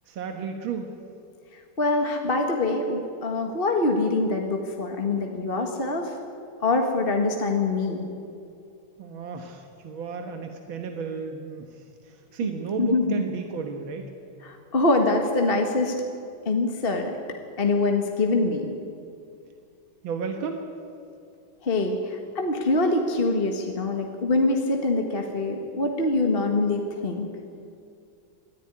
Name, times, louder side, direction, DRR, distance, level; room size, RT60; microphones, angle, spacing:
voice 1, 0.1-0.9 9.0-14.1 20.0-20.6, right 6 dB, 80° right, 4 dB, 2.1 m, -33 dB
voice 2, 1.8-6.1 6.6-8.1 12.8-13.2 14.4-16.0 16.5-17.2 17.6-18.7 21.6-27.3, left 2 dB, 30° left, 3 dB, 1.6 m, -24 dB
22.5 x 13.5 x 9.8 m, 2.5 s
omnidirectional pair, 2.2 m